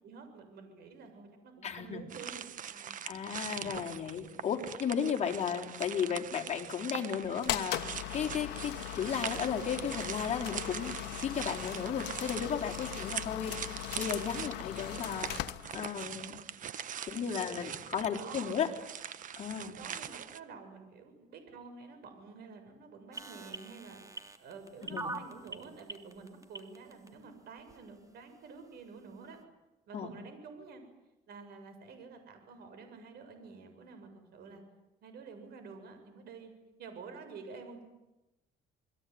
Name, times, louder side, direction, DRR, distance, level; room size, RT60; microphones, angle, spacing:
voice 1, 0.0-3.0 13.3-13.5 17.1-17.2 17.6-17.7 18.1-18.6 19.6-24.0 24.4-29.4 29.9-30.8 31.3-34.6 35.0-36.5 36.8-37.8, right 4 dB, 70° right, 7 dB, 7.3 m, -49 dB
voice 2, 1.6-2.0 3.0-7.8 8.1-13.5 13.9-15.3 15.7-16.4 17.1-18.7 19.4-19.8 24.9-25.1 29.9-30.1, left 7 dB, 40° left, 1 dB, 4.3 m, -34 dB
sound 1, 2.1-20.4, right 9 dB, 50° right, 1.3 m, -42 dB
sound 2, 7.4-16.1, left 16 dB, 85° left, 1.3 m, -39 dB
sound 3, 23.1-27.1 27.7-27.8, right 2 dB, 20° right, 3.1 m, -41 dB
28.5 x 21.5 x 9.7 m, 0.98 s
cardioid pair, 110°, 17 cm